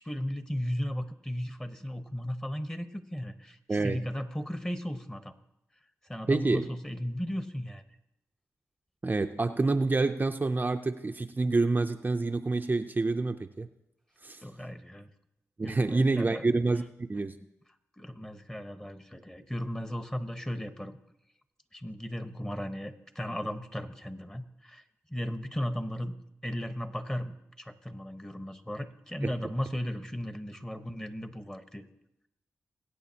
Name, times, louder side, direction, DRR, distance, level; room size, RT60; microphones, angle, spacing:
voice 1, 0.0-3.6 3.8-5.3 6.1-7.8 14.4-15.1 15.6-16.4 18.0-21.0 21.7-24.8 25.1-26.2 26.4-31.9, equal, 10° left, 9 dB, 1.0 m, -36 dB
voice 2, 3.7-4.0 6.3-6.7 9.0-13.7 14.2-14.4 15.6-16.8 17.1-17.4 29.2-29.4, right 3 dB, 30° right, 6 dB, 0.5 m, -27 dB
22.0 x 8.5 x 2.8 m, 0.85 s
cardioid pair, 60°, 6 cm